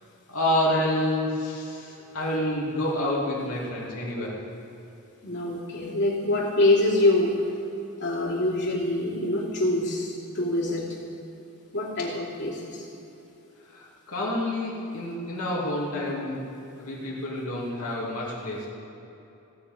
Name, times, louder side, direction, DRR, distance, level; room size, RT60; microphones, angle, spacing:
voice 1, 0.3-4.4 13.7-16.4 16.8-18.7, left 1 dB, 70° left, -5 dB, 2.7 m, -28 dB
voice 2, 5.2-7.4 8.0-10.9 11.7-12.9, left 2 dB, 55° left, -4 dB, 3.0 m, -25 dB
16.5 x 5.8 x 8.7 m, 2.9 s
head